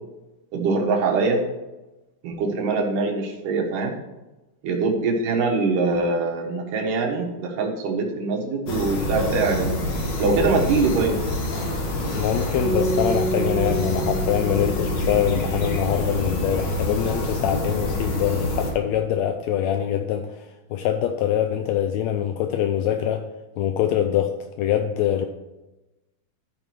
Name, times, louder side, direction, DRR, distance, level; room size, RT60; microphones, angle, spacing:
voice 1, 0.5-1.4 2.2-3.9 4.6-9.7 10.2-11.1, right 4 dB, 85° right, 0 dB, 3.0 m, -23 dB
sound 1, 8.7-18.7, left 1 dB, 55° left, 1.3 m, -26 dB
voice 2, 12.1-23.2 23.6-24.3 24.6-25.3, left 10 dB, 85° left, 7 dB, 1.6 m, -24 dB
sound 2, 12.6-16.8, right 2 dB, 40° right, 1.5 m, -29 dB
13.0 x 5.3 x 4.6 m, 1.0 s
omnidirectional pair, 3.7 m